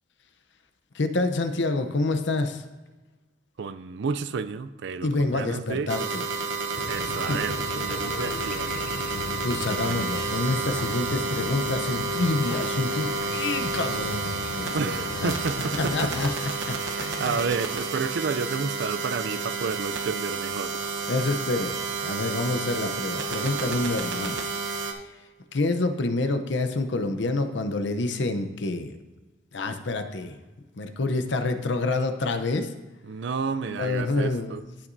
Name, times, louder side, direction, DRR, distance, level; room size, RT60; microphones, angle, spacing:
voice 1, 0.9-2.6 5.0-6.2 7.3-7.4 9.3-14.9 15.2-15.3 15.8-16.3 16.6-17.4 21.1-21.8 22.0-24.4 25.5-29.0 29.5-30.4 30.8-32.7 33.7-34.6, left 2 dB, 70° left, 8 dB, 0.7 m, -27 dB
voice 2, 3.6-5.9 6.9-8.9 14.7-16.1 16.8-20.8 33.1-34.6, right 5 dB, 70° right, 13 dB, 0.4 m, -31 dB
sound 1, 5.9-24.9, right 4 dB, 85° right, 0.9 m, -30 dB
sound 2, 6.7-16.4, left 5 dB, 50° left, 0.4 m, -37 dB
16.0 x 5.9 x 2.7 m, 1.2 s
head